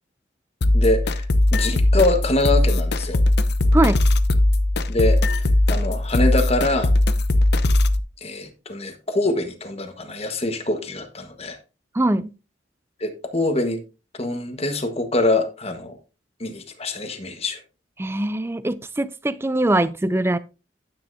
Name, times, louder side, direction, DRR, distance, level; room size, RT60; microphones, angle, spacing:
sound 1, 0.6-8.0, left 1 dB, 60° left, 0.7 m, -19 dB
voice 1, 0.7-1.3 1.5-3.2 4.9-6.9 8.2-11.6 13.0-13.8 14.2-16.0 16.4-17.6, left 2 dB, 35° left, 1.4 m, -24 dB
voice 2, 11.9-12.3 18.0-20.4, right 1 dB, 15° right, 0.4 m, -22 dB
9.8 x 9.6 x 2.7 m
head